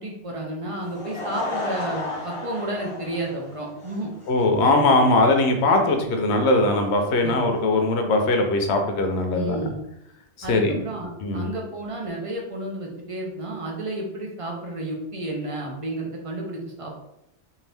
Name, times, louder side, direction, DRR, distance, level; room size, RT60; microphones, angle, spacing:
voice 1, 0.0-4.1 7.2-7.5 9.3-9.8 10.4-17.0, right 1 dB, 50° right, -1 dB, 0.4 m, -32 dB
Laughter / Crowd, 0.7-7.6, left 2 dB, 35° left, 0.5 m, -35 dB
voice 2, 4.3-9.7 10.4-10.8 11.2-11.4, left 2 dB, 70° left, 4 dB, 0.8 m, -20 dB
2.7 x 2.5 x 3.3 m, 0.82 s
omnidirectional pair, 1.2 m